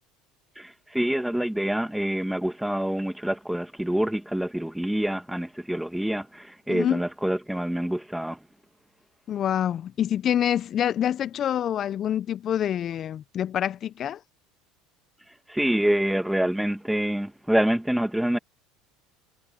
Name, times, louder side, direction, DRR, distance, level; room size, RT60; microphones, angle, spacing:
voice 1, 0.6-8.4 15.5-18.4, right 1 dB, 5° right, 2.5 m, -26 dB
voice 2, 6.7-7.0 9.3-14.2, left 10 dB, 40° left, 1.3 m, -26 dB
hypercardioid pair, 70°, 0 cm